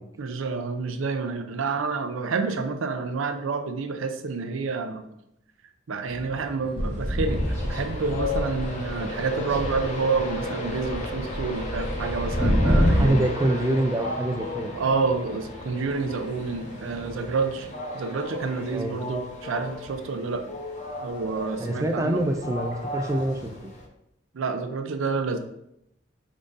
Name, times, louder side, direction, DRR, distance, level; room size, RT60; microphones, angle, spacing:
voice 1, 0.2-5.1 5.9-13.3 14.7-17.7 17.9-20.6 21.0-22.2 24.3-25.4, right 4 dB, 85° right, 8 dB, 0.5 m, -29 dB
sound 1, 6.1-17.7, equal, 30° right, 0.7 m, -43 dB
sound 2, 6.8-9.1 9.4-13.1, equal, 15° left, 0.9 m, -26 dB
Train, 7.2-23.9, left 1 dB, 35° left, 0.6 m, -35 dB
voice 2, 12.9-14.7 18.7-19.0 21.6-23.5, right 1 dB, 15° right, 6 dB, 0.3 m, -25 dB
5.2 x 3.6 x 2.5 m, 0.81 s
head